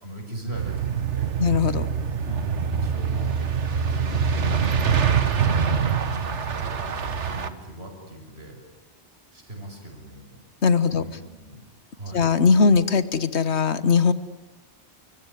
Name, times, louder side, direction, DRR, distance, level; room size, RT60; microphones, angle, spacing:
voice 1, 0.0-1.4 2.2-3.4 3.7-5.1 5.9-6.9 7.2-8.6 9.3-10.4 10.9-11.6 11.9-12.3, right 1 dB, 65° right, 3 dB, 6.4 m, -39 dB
sound 1, 0.5-7.5, right 6 dB, 90° right, 1.7 m, -24 dB
voice 2, 1.4-1.9 10.6-11.0 12.1-14.1, left 5 dB, 75° left, 14 dB, 1.5 m, -20 dB
25.0 x 23.5 x 9.9 m, 1.1 s
omnidirectional pair, 1.2 m